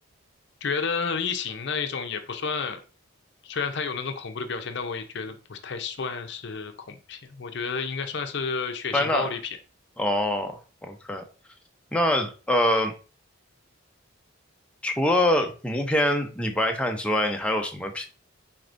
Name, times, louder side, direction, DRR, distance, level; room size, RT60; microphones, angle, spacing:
voice 1, 0.6-2.8 3.4-9.4, left 5 dB, 55° left, 0.6 m, -31 dB
voice 2, 8.9-9.3 10.0-11.2 11.9-12.9 14.8-18.1, left 1 dB, 5° left, 0.5 m, -24 dB
4.6 x 4.3 x 2.6 m
head